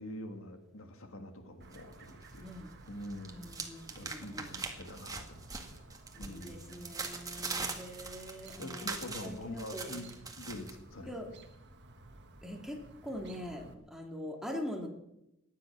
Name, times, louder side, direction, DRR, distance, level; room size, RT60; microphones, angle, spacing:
voice 1, 0.0-2.5 2.9-3.6 4.0-5.8 6.2-6.9 8.6-11.2, left 1 dB, 70° left, 6 dB, 1.9 m, -45 dB
Chirp tweet, 1.6-13.7, right 2 dB, 55° right, 1.5 m, -55 dB
sound 1, 1.7-2.6 2.9-10.7, right 4 dB, 15° right, 1.9 m, -42 dB
voice 2, 2.4-2.7 3.3-4.6 6.1-10.1 11.0-11.3 12.4-14.9, equal, ahead, 1 dB, 2.4 m, -43 dB
14.5 x 10.5 x 7.3 m, 0.86 s
head